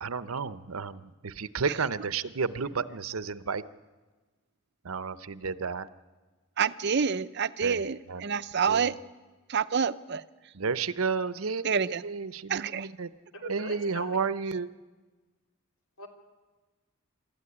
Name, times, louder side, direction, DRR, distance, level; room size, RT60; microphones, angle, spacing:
voice 1, 0.0-3.7 4.8-5.9 7.6-8.2 8.7-8.9 10.5-11.6 12.0-13.1 13.5-14.7, right 5 dB, 85° right, 14 dB, 0.8 m, -32 dB
voice 2, 6.6-8.9 9.5-10.2 11.6-12.0 12.5-12.9 13.4-13.5, right 6 dB, 55° right, 14 dB, 0.6 m, -28 dB
voice 3, 13.3-14.2 16.0-16.1, left 1 dB, 80° left, 3 dB, 3.2 m, -42 dB
25.0 x 13.5 x 9.7 m, 1.3 s
head